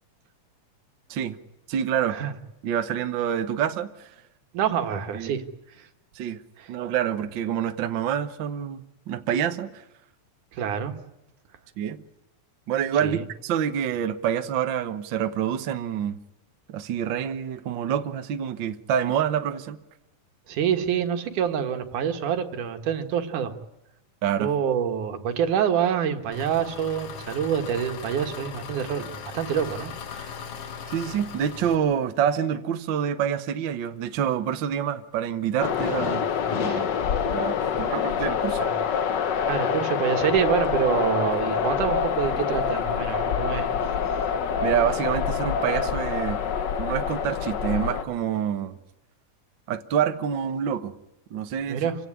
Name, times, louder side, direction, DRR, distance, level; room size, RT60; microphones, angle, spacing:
voice 1, 1.7-2.2 2.6-4.1 5.1-5.3 6.1-6.4 6.7-9.8 11.8-12.0 12.7-16.2 16.7-19.8 24.2-24.5 30.9-36.9 37.2-38.6 44.6-46.4 46.8-48.8 49.7-50.9 51.3-51.9, right 9 dB, 55° right, 1.4 m, -27 dB
voice 2, 4.5-5.4 5.8-5.9 6.6-6.7 10.5-10.9 13.0-13.2 20.5-23.5 24.4-30.5 36.6-37.2 38.6-38.7 39.5-43.7 51.7-52.0, right 8 dB, 85° right, 3.1 m, -27 dB
Engine, 26.3-31.7, left 6 dB, 55° left, 2.5 m, -39 dB
sound 1, 35.6-48.0, left 7 dB, 70° left, 1.0 m, -26 dB
26.5 x 16.5 x 9.8 m
omnidirectional pair, 3.5 m